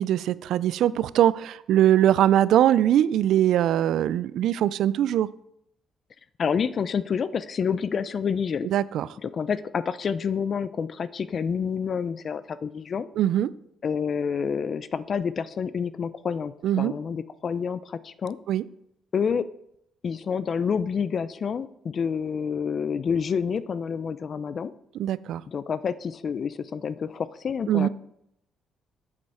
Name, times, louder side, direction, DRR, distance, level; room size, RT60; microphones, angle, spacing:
voice 1, 0.0-5.3 8.6-9.1 13.2-13.5 16.6-16.9 18.5-18.6 25.0-25.4 27.7-27.9, right 11 dB, 80° right, 19 dB, 0.3 m, -21 dB
voice 2, 6.4-8.7 9.2-13.1 13.8-18.4 19.1-19.5 20.0-24.7 25.5-27.9, left 6 dB, 50° left, 16 dB, 0.4 m, -28 dB
7.8 x 7.5 x 4.3 m, 0.77 s
cardioid pair, 90°, 0 cm